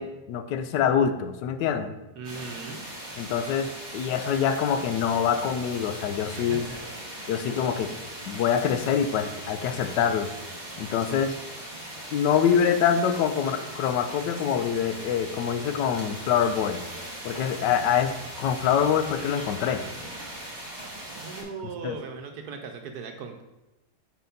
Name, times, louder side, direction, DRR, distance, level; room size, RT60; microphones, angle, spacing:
voice 1, 0.0-1.9 3.2-6.7 7.3-7.9 8.3-10.3 10.8-11.4 12.1-16.8 17.2-19.8 21.8-22.0, left 8 dB, 85° left, 10 dB, 1.2 m, -25 dB
sound 1, 2.2-21.4, right 1 dB, 25° right, 1.8 m, -39 dB
voice 2, 2.2-2.8 6.3-6.8 21.2-23.4, right 5 dB, 70° right, 5 dB, 1.1 m, -38 dB
5.3 x 4.5 x 5.1 m, 1.0 s
omnidirectional pair, 1.8 m